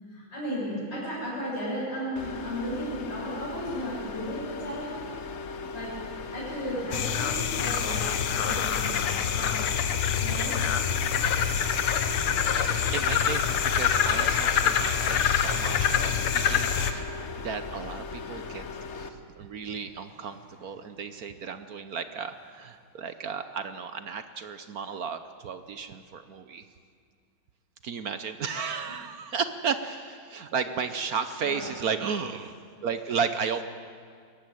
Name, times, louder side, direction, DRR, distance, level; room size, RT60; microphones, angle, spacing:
voice 1, 0.0-4.9 5.7-5.9 6.3-8.9 9.1-9.7 10.2-10.6 20.0-20.8 24.8-24.9 28.9-29.0 30.6-30.9 31.4-31.8, equal, 30° left, -8 dB, 7.1 m, -35 dB
sound 1, 2.2-19.1, left 4 dB, 45° left, 1.0 m, -39 dB
sound 2, 6.9-16.9, left 8 dB, 90° left, 2.0 m, -26 dB
voice 2, 11.3-17.1 17.4-18.6 18.9-26.6 27.8-32.6 32.8-33.6, right 6 dB, 60° right, 10 dB, 1.0 m, -34 dB
21.0 x 15.5 x 9.4 m, 2.2 s
omnidirectional pair, 2.3 m